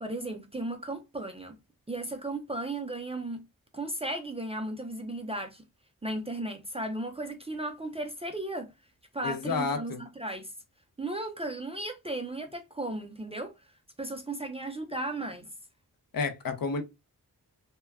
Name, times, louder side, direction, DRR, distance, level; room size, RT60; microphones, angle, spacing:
voice 1, 0.0-1.6 1.9-3.4 3.7-5.6 6.0-8.7 9.1-10.5 11.0-13.5 14.0-15.5, right 2 dB, 15° right, 0.4 m, -35 dB
voice 2, 9.2-10.0 16.1-16.8, left 4 dB, 65° left, 0.6 m, -30 dB
2.1 x 2.1 x 3.4 m
wide cardioid pair, 100°, 37 cm